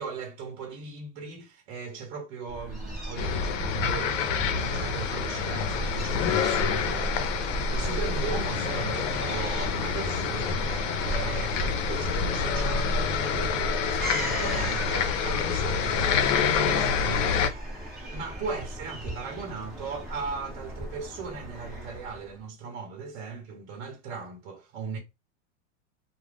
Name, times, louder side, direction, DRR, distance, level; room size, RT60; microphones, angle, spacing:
voice 1, 0.0-25.0, right 4 dB, 55° right, 0.9 m, -38 dB
Fowl / Gull seagull, 2.5-22.4, right 1 dB, ahead, 1.0 m, -36 dB
sound 1, 3.2-17.5, left 6 dB, 75° left, 0.7 m, -27 dB
sound 2, 4.4-12.3, right 4 dB, 25° right, 0.5 m, -45 dB
2.4 x 2.2 x 3.3 m
supercardioid pair, 130°, 39 cm